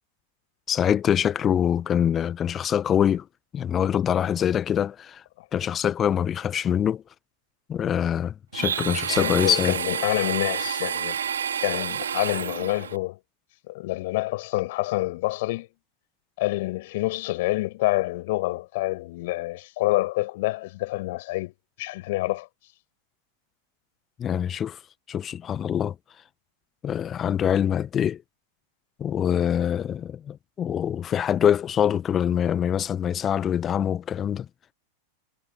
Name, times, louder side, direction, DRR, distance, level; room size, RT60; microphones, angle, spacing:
voice 1, 0.7-3.3 3.5-5.2 5.5-7.0 7.7-9.8 24.2-24.8 25.1-25.9 26.8-28.2 29.0-34.5, left 9 dB, 25° left, 1.2 m, -24 dB
Domestic sounds home sounds, 8.5-13.0, right 8 dB, 65° right, 5.1 m, -29 dB
voice 2, 9.1-11.2 11.6-13.2 13.7-15.7 16.4-22.5, left 19 dB, 50° left, 7.1 m, -27 dB
figure-of-eight pair, 90°, 0 cm